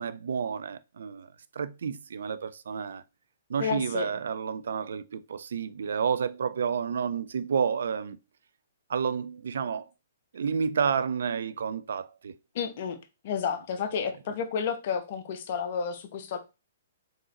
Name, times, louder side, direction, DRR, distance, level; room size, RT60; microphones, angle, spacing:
voice 1, 0.0-3.0 3.5-8.2 8.9-9.9 10.3-12.3, right 6 dB, 70° right, 0.4 m, -30 dB
voice 2, 3.6-4.1 12.5-13.0 13.2-16.4, left 6 dB, 50° left, 0.9 m, -31 dB
3.9 x 3.8 x 2.9 m
hypercardioid pair, 125°, 0 cm